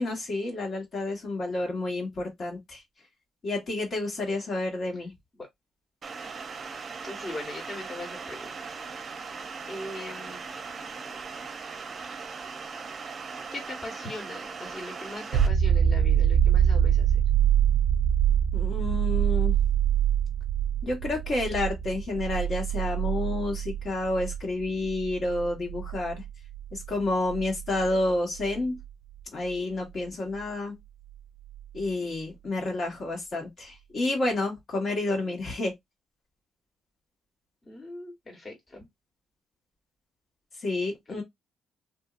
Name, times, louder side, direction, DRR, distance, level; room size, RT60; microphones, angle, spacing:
voice 1, 0.0-2.8 3.4-5.1 18.5-19.5 20.8-26.2 26.7-28.8 29.3-30.7 31.7-35.7 40.6-41.2, left 2 dB, 50° left, 1.4 m, -30 dB
sound 1, 6.0-15.5, right 5 dB, 45° right, 0.6 m, -39 dB
voice 2, 7.0-8.8 9.2-9.3 9.7-10.6 12.1-12.2 13.5-17.2 37.6-38.9 41.1-41.2, left 1 dB, 30° left, 1.3 m, -40 dB
sound 2, 15.3-28.8 31.6-31.7, right 9 dB, 90° right, 0.4 m, -25 dB
2.6 x 2.6 x 2.5 m
cardioid pair, 90°, 0 cm